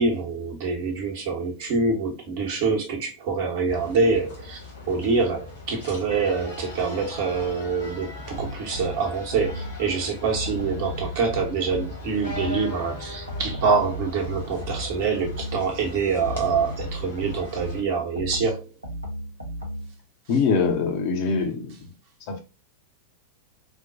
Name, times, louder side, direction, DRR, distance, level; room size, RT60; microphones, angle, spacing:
voice 1, 0.0-4.6 4.9-18.7, right 4 dB, 50° right, 1.2 m, -25 dB
sound 1, 3.7-17.8, left 2 dB, 70° left, 1.7 m, -39 dB
sound 2, 8.3-9.9 10.3-12.8 13.3-15.8 16.2-20.0, equal, 90° right, 0.7 m, -35 dB
voice 2, 20.3-21.7 22.3-22.4, left 5 dB, 45° left, 0.8 m, -23 dB
4.2 x 2.2 x 2.7 m
figure-of-eight pair, 90°, 0 cm